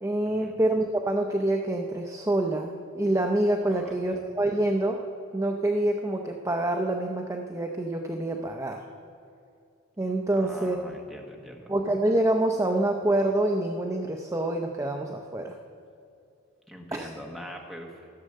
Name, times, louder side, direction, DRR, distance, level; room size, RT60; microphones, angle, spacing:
voice 1, 0.0-5.0 5.3-8.8 10.0-10.9 11.7-15.6 16.9-17.1, right 1 dB, 15° right, 2 dB, 0.5 m, -26 dB
voice 2, 3.7-4.2 10.4-11.7 16.7-18.1, equal, ahead, 0 dB, 1.3 m, -43 dB
13.5 x 7.4 x 6.5 m, 2.5 s
head